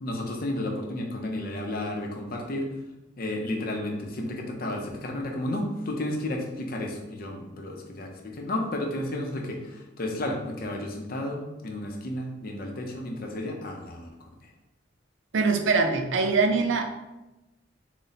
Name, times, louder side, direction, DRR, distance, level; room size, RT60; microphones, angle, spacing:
voice 1, 0.0-2.7 3.2-14.3, left 1 dB, 55° left, 2 dB, 0.6 m, -32 dB
voice 2, 15.3-16.9, right 4 dB, 80° right, 6 dB, 0.5 m, -23 dB
4.0 x 2.1 x 3.9 m, 1.0 s
head